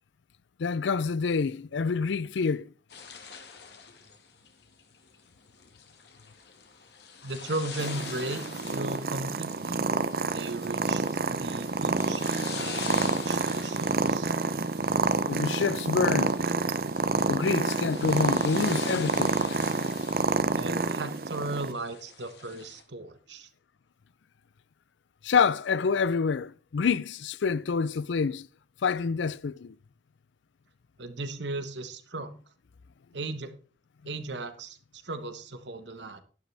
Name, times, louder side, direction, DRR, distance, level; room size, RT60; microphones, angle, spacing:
voice 1, 0.6-2.7 15.3-16.4 17.3-19.4 25.2-28.5 28.8-29.7, left 5 dB, 80° left, 0.5 m, -27 dB
sound 1, 2.9-22.8, left 6 dB, 65° left, 1.9 m, -44 dB
voice 2, 7.2-9.8 10.3-12.3 12.6-14.3 20.5-23.5 31.0-32.3 33.1-33.5 34.0-36.2, right 2 dB, 75° right, 1.4 m, -36 dB
Purr, 7.8-21.7, right 3 dB, 50° right, 0.7 m, -28 dB
11.5 x 11.5 x 3.4 m
head